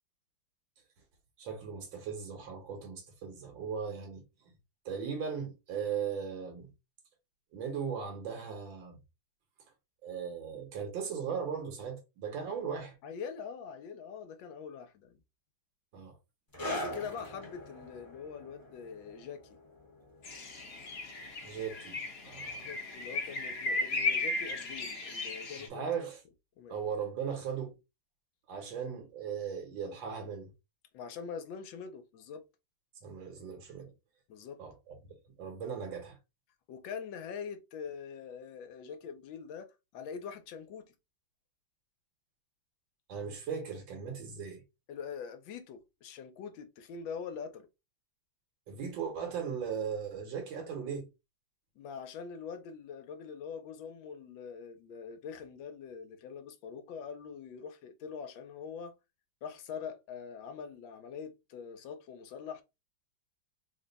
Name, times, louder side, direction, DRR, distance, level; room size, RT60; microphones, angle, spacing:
voice 1, 1.4-4.2 4.9-6.7 7.5-9.0 10.0-13.0 15.9-16.2 21.4-22.7 25.6-26.2 26.7-27.8 28.5-30.5 33.0-33.9 34.6-35.0 35.3-36.2 43.1-44.6 48.7-51.1, right 7 dB, 80° right, 1.6 m, -38 dB
voice 2, 13.0-15.2 16.7-19.6 22.6-25.9 26.6-26.7 30.9-32.5 34.3-34.6 36.7-40.9 44.9-47.7 51.8-58.9 59.4-62.6, left 6 dB, 85° left, 1.4 m, -43 dB
sound 1, 16.5-23.5 23.8-24.0 24.8-24.9, equal, 15° left, 0.8 m, -44 dB
sound 2, 20.2-25.7, left 3 dB, 50° left, 0.8 m, -35 dB
3.6 x 2.2 x 3.9 m
omnidirectional pair, 2.1 m